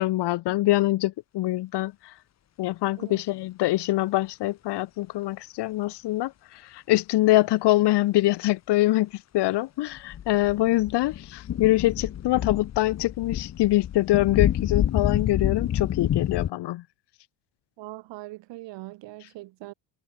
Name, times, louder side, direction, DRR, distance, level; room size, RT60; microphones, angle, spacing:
voice 1, 0.0-2.1 2.6-16.8, left 17 dB, 70° left, 2.0 m, -24 dB
sound 1, 10.0-16.5, left 10 dB, 40° left, 1.2 m, -28 dB
voice 2, 17.8-19.7, right 19 dB, 80° right, 4.4 m, -41 dB
cardioid pair, 140°, 42 cm